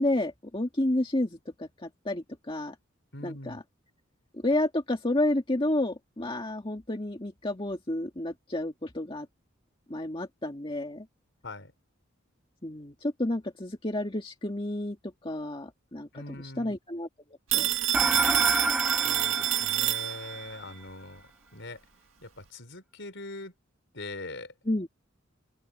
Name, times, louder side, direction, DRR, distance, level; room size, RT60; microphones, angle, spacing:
voice 1, 0.0-2.8 3.2-3.6 4.3-9.3 9.9-11.1 12.6-15.0 15.2-17.1 17.5-17.7 18.0-18.5 24.7-24.9, left 1 dB, 25° left, 1.9 m, -31 dB
voice 2, 3.1-3.6 11.4-11.7 16.1-16.7 19.0-21.8 22.2-23.5 23.9-24.5, left 2 dB, 60° left, 5.5 m, -42 dB
Telephone, 17.5-20.5, right 13 dB, 75° right, 1.8 m, -27 dB
sound 1, 17.9-20.6, right 1 dB, 5° right, 0.5 m, -29 dB
open air
head